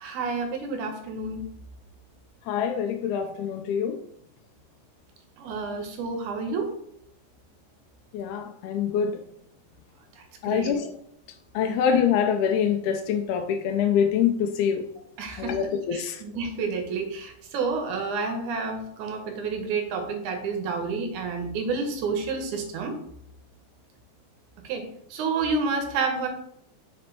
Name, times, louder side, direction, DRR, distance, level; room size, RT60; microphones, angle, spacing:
voice 1, 0.0-1.4 5.4-6.7 10.2-10.7 11.6-11.7 15.2-22.9 24.6-24.8 25.1-26.3, right 4 dB, 75° right, 2.1 m, -30 dB
voice 2, 2.5-4.0 8.1-9.2 10.4-10.9 11.5-14.8 15.4-16.2, left 8 dB, 80° left, 1.7 m, -25 dB
5.1 x 4.3 x 4.4 m
omnidirectional pair, 3.8 m